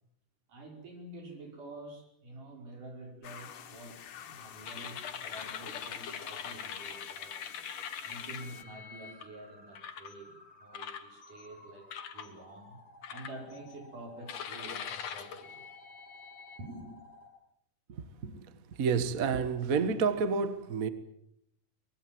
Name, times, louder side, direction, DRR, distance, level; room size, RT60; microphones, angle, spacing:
voice 1, 0.5-7.4 8.0-12.8 13.1-15.6 16.6-16.9, right 1 dB, 75° right, 6.9 m, -48 dB
sound 1, 3.2-8.6, left 9 dB, 75° left, 3.1 m, -49 dB
sound 2, 4.6-9.2 9.8-10.1 10.7-11.5 11.9-12.3 13.0-13.7 14.3-16.6, left 8 dB, 60° left, 2.5 m, -42 dB
sound 3, 7.6-17.3, left 1 dB, ahead, 6.5 m, -55 dB
voice 2, 17.9-20.9, right 5 dB, 45° right, 1.1 m, -30 dB
24.0 x 21.0 x 7.7 m
omnidirectional pair, 3.7 m